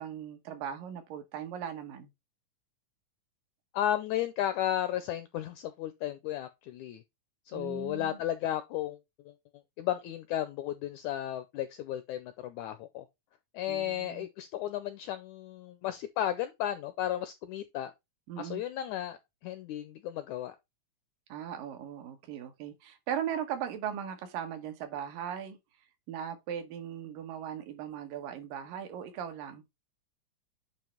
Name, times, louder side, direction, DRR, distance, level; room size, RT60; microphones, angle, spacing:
voice 1, 0.0-2.1 7.5-8.2 13.7-14.3 18.3-18.6 21.3-25.6 26.1-29.6, right 9 dB, 75° right, 2.7 m, -38 dB
voice 2, 3.7-7.0 7.5-9.0 9.2-9.3 9.8-13.0 13.5-17.9 18.4-19.2 19.4-20.5, left 12 dB, 85° left, 1.7 m, -34 dB
9.1 x 3.1 x 4.3 m
omnidirectional pair, 3.9 m